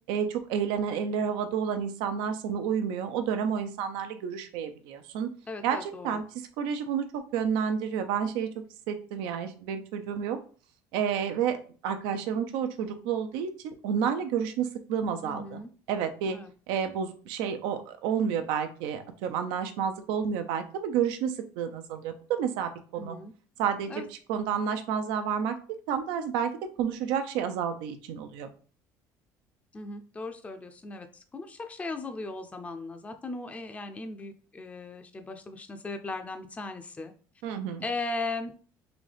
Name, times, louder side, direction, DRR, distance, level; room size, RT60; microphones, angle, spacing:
voice 1, 0.1-5.3 5.6-6.2 6.6-8.5 8.9-10.4 10.9-11.6 11.8-15.6 15.9-16.4 16.7-23.2 23.6-24.0 24.3-25.6 25.9-26.5 26.8-28.5 37.4-37.8, right 7 dB, 80° right, 8 dB, 0.6 m, -30 dB
voice 2, 5.5-6.2 15.2-15.7 16.3-16.5 23.0-23.3 23.9-24.1 29.7-37.1 37.8-38.5, left 3 dB, 15° left, 6 dB, 0.5 m, -37 dB
4.0 x 2.7 x 3.4 m, 0.41 s
supercardioid pair, 100°, 8 cm